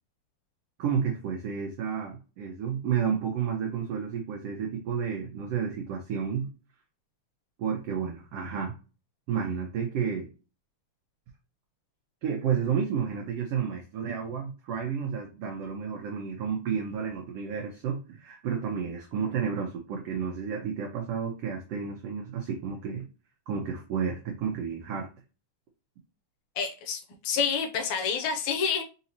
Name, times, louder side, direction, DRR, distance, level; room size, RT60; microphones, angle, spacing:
voice 1, 0.8-6.5 7.6-8.7 9.3-10.3 12.2-23.1 23.5-25.1, right 7 dB, 80° right, 1 dB, 1.4 m, -31 dB
voice 2, 26.6-28.8, left 6 dB, 80° left, 4 dB, 2.0 m, -28 dB
4.9 x 2.7 x 2.9 m, 0.33 s
omnidirectional pair, 3.6 m